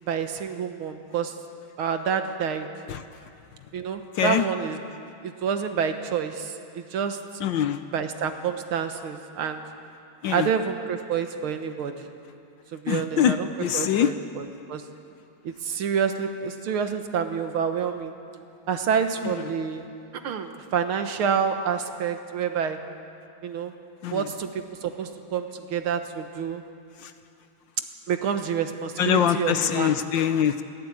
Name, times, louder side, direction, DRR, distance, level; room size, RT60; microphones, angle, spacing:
voice 1, 0.0-1.3 1.8-2.7 3.7-4.8 5.2-7.2 7.9-9.6 10.3-12.1 12.7-13.5 13.7-14.8 15.4-18.1 18.7-19.8 20.2-22.8 23.4-23.7 24.1-26.6 28.1-29.9, right 7 dB, 75° right, 7 dB, 2.1 m, -28 dB
voice 2, 4.2-4.5 7.4-7.8 10.2-10.5 12.9-14.1 19.2-19.3 24.0-24.2 27.0-27.1 29.0-30.6, left 9 dB, 70° left, 10 dB, 1.3 m, -23 dB
22.0 x 16.5 x 8.6 m, 2.6 s
omnidirectional pair, 2.4 m